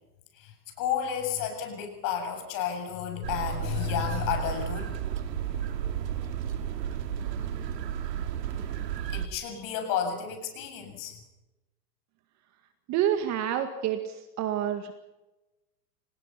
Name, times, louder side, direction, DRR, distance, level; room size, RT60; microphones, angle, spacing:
voice 1, 0.3-5.0 9.0-11.2, left 8 dB, 40° left, 5 dB, 7.7 m, -32 dB
sound 1, 3.2-9.3, right 9 dB, 75° right, 2.6 m, -32 dB
voice 2, 12.9-14.9, right 10 dB, 35° right, 8 dB, 2.0 m, -28 dB
30.0 x 18.5 x 5.8 m, 1.0 s
hypercardioid pair, 130°, 50 cm